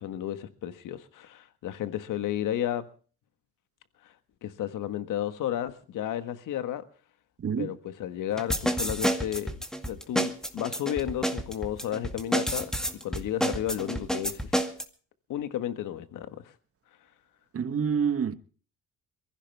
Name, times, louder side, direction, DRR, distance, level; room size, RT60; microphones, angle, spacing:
voice 1, 0.0-2.9 4.4-6.8 7.6-9.6 9.8-12.7 13.0-14.5 15.3-16.4, left 11 dB, 70° left, 1.6 m, -32 dB
voice 2, 7.4-7.7 17.5-18.4, right 7 dB, 45° right, 1.3 m, -27 dB
sound 1, 8.4-14.8, equal, ahead, 2.1 m, -29 dB
23.0 x 15.5 x 3.5 m
supercardioid pair, 75°, 32 cm